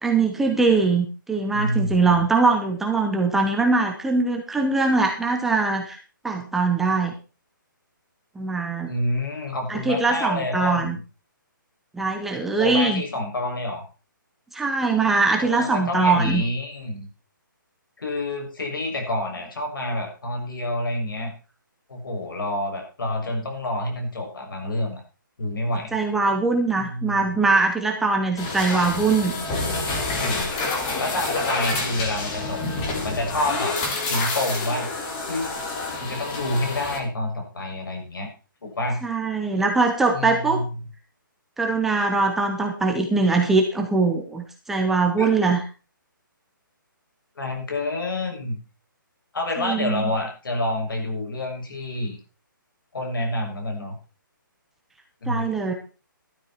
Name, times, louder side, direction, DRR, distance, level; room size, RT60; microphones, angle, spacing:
voice 1, 0.0-6.0 6.2-7.1 8.4-8.9 9.7-11.0 11.9-13.0 14.5-16.4 25.9-29.3 39.0-40.6 41.6-45.6 49.6-50.1 55.3-55.7, right 3 dB, 5° right, 2 dB, 0.8 m, -22 dB
voice 2, 1.5-2.2 8.9-11.0 12.6-13.8 15.4-17.1 18.0-21.3 21.9-25.0 25.4-26.0 26.8-27.2 29.9-30.5 31.0-32.6 33.0-33.8 34.0-34.9 35.3-35.5 36.0-38.3 38.6-39.0 40.1-40.7 45.2-45.5 47.4-48.6 49.3-52.2 52.9-54.0 55.2-55.7, left 1 dB, 75° left, 3 dB, 6.9 m, -28 dB
sound 1, 28.4-37.0, left 3 dB, 15° left, 1.9 m, -28 dB
12.5 x 12.0 x 4.5 m, 0.33 s
hypercardioid pair, 175°, 11 cm